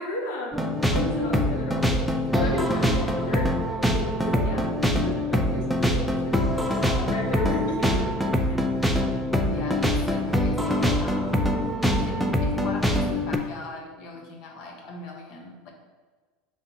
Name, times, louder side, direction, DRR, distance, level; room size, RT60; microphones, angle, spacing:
voice 1, 0.0-3.5 3.9-4.6 4.9-8.7 12.0-12.1, left 2 dB, 80° left, -1 dB, 1.1 m, -33 dB
sound 1, 0.5-13.4, left 1 dB, ahead, 0.5 m, -24 dB
voice 2, 9.5-11.5 11.9-15.7, left 2 dB, 60° left, 1 dB, 1.0 m, -40 dB
5.4 x 3.3 x 2.8 m, 1.4 s
supercardioid pair, 105°, 0 cm